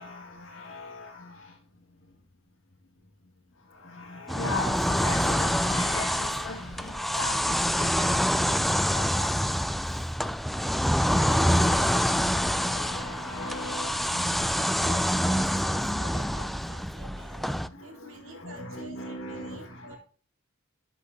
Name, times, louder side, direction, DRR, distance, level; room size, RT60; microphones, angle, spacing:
voice 1, 0.0-1.6 3.6-9.5 9.8-10.0 10.9-14.9 15.8-16.1 17.6-20.0, left 2 dB, 65° left, 2.1 m, -39 dB
sound 1, 4.3-17.7, equal, ahead, 0.3 m, -26 dB
sound 2, 5.0-8.7, right 2 dB, 35° right, 3.3 m, -53 dB
voice 2, 13.4-13.9 14.2-20.0, right 1 dB, 80° right, 2.8 m, -48 dB
12.5 x 8.4 x 2.8 m
head